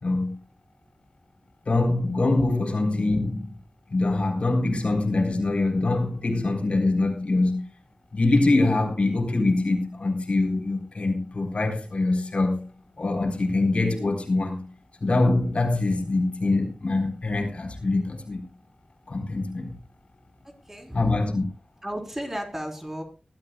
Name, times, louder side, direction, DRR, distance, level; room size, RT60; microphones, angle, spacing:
voice 1, 0.0-0.4 1.7-3.5 3.9-7.6 8.1-12.7 13.0-14.7 15.0-18.4 19.1-19.7 20.9-21.4, left 2 dB, 65° left, 3.9 m, -24 dB
voice 2, 20.4-21.1 21.8-23.0, equal, 15° right, 4.0 m, -34 dB
21.5 x 13.0 x 2.3 m
wide cardioid pair, 80°, 2 cm